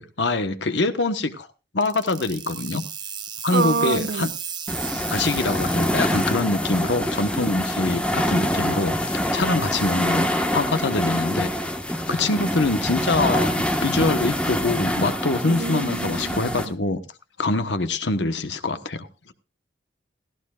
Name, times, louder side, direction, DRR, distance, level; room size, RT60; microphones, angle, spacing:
voice 1, 0.0-1.5 1.7-2.8 3.4-4.3 5.1-11.5 12.1-17.0 17.4-19.3, left 2 dB, 80° left, 1.2 m, -24 dB
sound 1, 1.8-6.4, right 8 dB, 25° right, 1.0 m, -35 dB
voice 2, 3.5-4.3 15.4-16.4, right 4 dB, 70° right, 0.7 m, -26 dB
sound 2, 4.7-16.7, equal, 5° left, 1.4 m, -25 dB
17.0 x 15.5 x 2.4 m
head